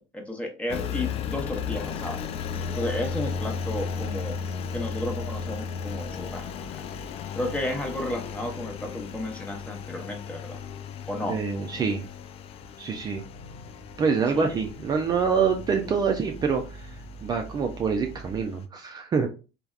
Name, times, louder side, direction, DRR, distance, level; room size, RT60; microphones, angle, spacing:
voice 1, 0.1-2.2 2.7-4.4 4.7-6.8 7.3-10.6 11.1-11.4 14.3-14.5, left 1 dB, 10° left, 2 dB, 0.8 m, -33 dB
Engine, 0.7-18.6, left 6 dB, 45° left, 0.4 m, -35 dB
voice 2, 11.3-12.0 12.8-13.2 14.0-19.3, right 5 dB, 30° right, 3 dB, 0.4 m, -26 dB
sound 1, 12.4-18.5, right 1 dB, 80° left, 0.9 m, -45 dB
3.3 x 2.1 x 2.3 m, 0.32 s
supercardioid pair, 95°, 14 cm